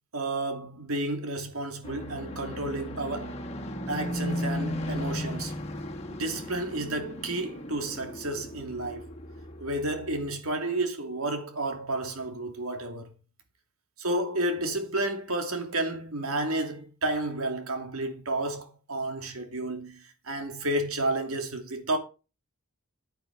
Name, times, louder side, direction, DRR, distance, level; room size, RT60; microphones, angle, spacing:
voice 1, 0.1-3.3 3.9-5.6 6.1-9.0 9.6-13.1 14.0-22.0, right 2 dB, 75° right, 2.7 m, -31 dB
sound 1, 1.8-10.3, left 1 dB, 30° left, 1.7 m, -36 dB
9.3 x 9.1 x 4.7 m
head